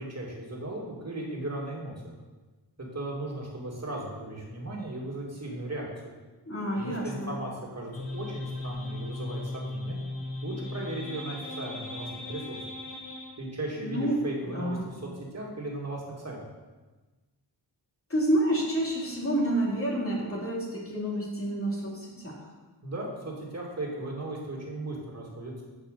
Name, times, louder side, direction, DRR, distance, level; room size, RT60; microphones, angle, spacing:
voice 1, 0.0-2.1 2.8-6.1 6.8-10.0 10.4-12.6 13.4-16.4 22.8-25.6, right 1 dB, 35° right, -2 dB, 2.6 m, -36 dB
voice 2, 6.5-7.3 13.8-14.2 14.5-14.8 18.1-22.4, right 1 dB, 30° left, -4 dB, 2.8 m, -29 dB
sound 1, 7.9-13.3, left 2 dB, 80° left, 2.1 m, -37 dB
8.0 x 5.5 x 6.8 m, 1.2 s
wide cardioid pair, 80°, 45 cm